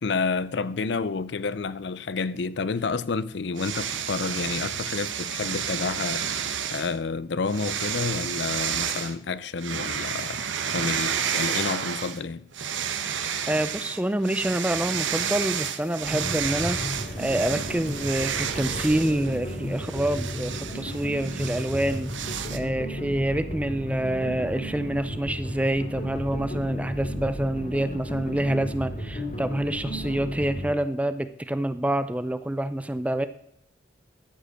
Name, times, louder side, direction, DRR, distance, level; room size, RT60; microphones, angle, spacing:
voice 1, 0.0-10.4 10.7-12.5, left 4 dB, 65° left, 0.5 m, -30 dB
sound 1, 3.6-6.9 7.5-9.1 9.6-12.2 12.5-22.6, right 8 dB, 80° right, 1.0 m, -31 dB
voice 2, 13.5-16.8 17.2-33.3, right 1 dB, 5° right, 0.5 m, -27 dB
sound 2, 16.0-30.7, equal, 45° left, 2.4 m, -33 dB
12.5 x 5.3 x 6.4 m
head